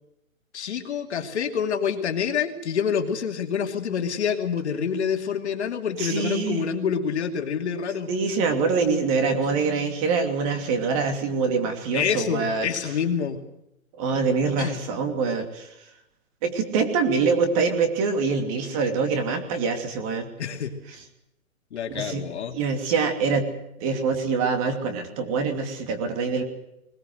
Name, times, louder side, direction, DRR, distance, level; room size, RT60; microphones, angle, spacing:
voice 1, 0.5-8.1 11.9-13.4 14.6-14.8 20.4-20.7 21.7-22.6, left 7 dB, 50° left, 5 dB, 2.7 m, -27 dB
voice 2, 6.0-6.7 8.1-12.7 13.9-15.7 16.4-20.3 21.9-22.2 22.5-23.5 23.8-26.4, right 5 dB, 25° right, 6 dB, 2.8 m, -24 dB
21.5 x 21.0 x 8.0 m, 0.84 s
hypercardioid pair, 165°, 42 cm